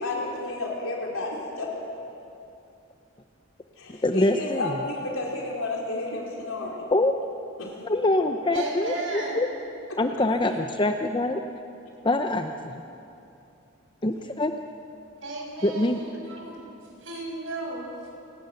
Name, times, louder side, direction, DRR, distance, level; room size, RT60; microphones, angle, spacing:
voice 1, 0.0-1.7 3.8-6.8 7.6-7.8 9.9-10.0, left 2 dB, 75° left, -2 dB, 4.5 m, -31 dB
voice 2, 3.9-4.8 6.9-7.2 7.9-9.5 10.0-11.5 12.0-12.8 14.0-14.5 15.6-16.0, left 2 dB, 25° left, 6 dB, 0.7 m, -24 dB
voice 3, 8.5-9.4 10.4-10.5 15.2-16.6 17.0-17.9, right 2 dB, 65° right, 0 dB, 6.1 m, -34 dB
29.0 x 12.5 x 9.2 m, 2.7 s
head